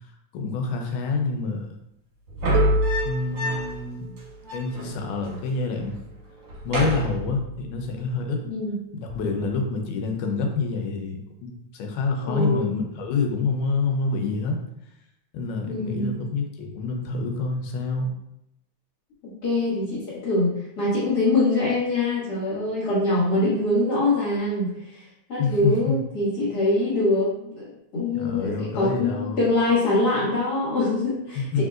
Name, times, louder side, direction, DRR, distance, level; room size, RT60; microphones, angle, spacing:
voice 1, 0.3-1.7 3.0-4.1 4.5-6.0 6.6-8.4 8.9-14.6 15.3-18.1 25.4-25.9 28.1-29.5 31.4-31.6, left 4 dB, 90° left, 3 dB, 2.2 m, -27 dB
sound 1, 2.3-3.9 4.2-4.3 4.4-5.4 5.7-6.1 6.4-7.8 9.1-9.5, equal, 60° right, 1.6 m, -27 dB
Harp, 2.5-8.3 9.4-9.5, right 5 dB, 80° right, 1.8 m, -35 dB
voice 2, 12.2-12.8 15.7-16.1 19.2-25.0 25.3-27.7 27.9-31.6, left 2 dB, 40° left, -8 dB, 1.8 m, -24 dB
4.2 x 3.7 x 2.4 m, 0.81 s
omnidirectional pair, 3.5 m